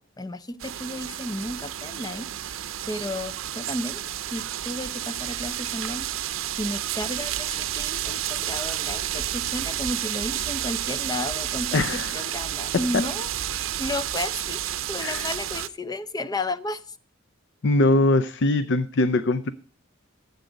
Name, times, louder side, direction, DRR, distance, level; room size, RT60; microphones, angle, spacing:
voice 1, 0.2-6.1 6.6-17.0, left 1 dB, 20° left, 0.6 m, -33 dB
sound 1, 0.6-15.7, right 12 dB, 85° right, 0.6 m, -31 dB
voice 2, 11.7-12.1 12.9-13.0 15.0-15.3 17.6-19.5, left 2 dB, 60° left, 0.6 m, -22 dB
14.5 x 8.1 x 5.1 m
head